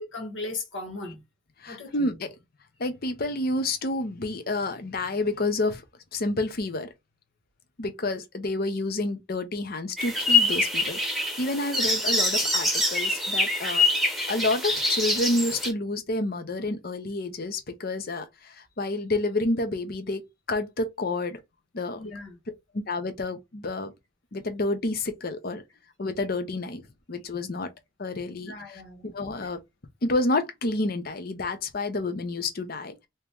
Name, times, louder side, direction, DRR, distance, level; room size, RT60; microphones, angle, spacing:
voice 1, 0.1-1.2 1.7-2.1 21.9-22.4 28.4-29.1, left 2 dB, 85° left, 1.6 m, -37 dB
voice 2, 1.6-2.3 2.8-5.8 6.1-6.9 7.8-13.8 14.3-21.4 21.7-22.0 22.7-23.9 24.3-25.6 26.0-26.8 27.1-27.7 28.0-29.6 30.0-33.0, left 2 dB, 50° left, 0.7 m, -29 dB
sound 1, 10.0-15.7, left 2 dB, ahead, 0.9 m, -25 dB
3.0 x 2.9 x 3.5 m
head